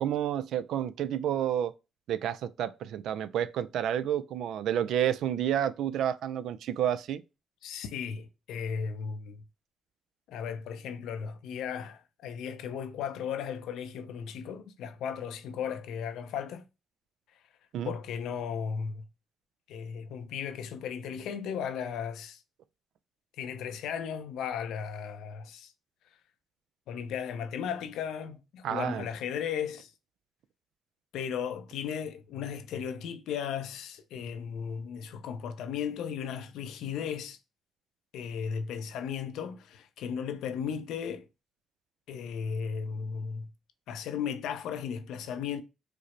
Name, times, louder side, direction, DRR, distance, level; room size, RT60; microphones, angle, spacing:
voice 1, 0.0-1.7 2.1-7.2 17.7-17.9 28.6-29.0, right 10 dB, 75° right, 0.3 m, -30 dB
voice 2, 7.6-9.4 10.3-16.6 17.8-19.1 19.7-22.4 23.4-25.7 26.9-29.9 31.1-37.4 38.1-41.3 42.1-43.5 43.9-45.6, left 7 dB, 85° left, 0.5 m, -36 dB
4.9 x 2.0 x 3.0 m
cardioid pair, 90°, 0 cm